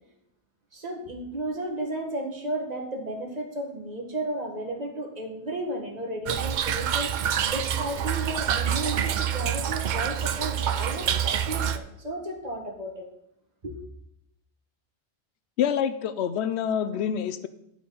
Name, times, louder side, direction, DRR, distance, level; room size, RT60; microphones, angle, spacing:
voice 1, 0.7-13.1 13.6-13.7, right 1 dB, 40° right, 0 dB, 1.6 m, -33 dB
Toilet flush / Trickle dribble, 6.3-11.8, right 9 dB, 60° right, 0.5 m, -27 dB
voice 2, 15.6-17.5, left 8 dB, 90° left, 12 dB, 0.9 m, -26 dB
10.0 x 4.9 x 5.4 m, 0.80 s
omnidirectional pair, 1.1 m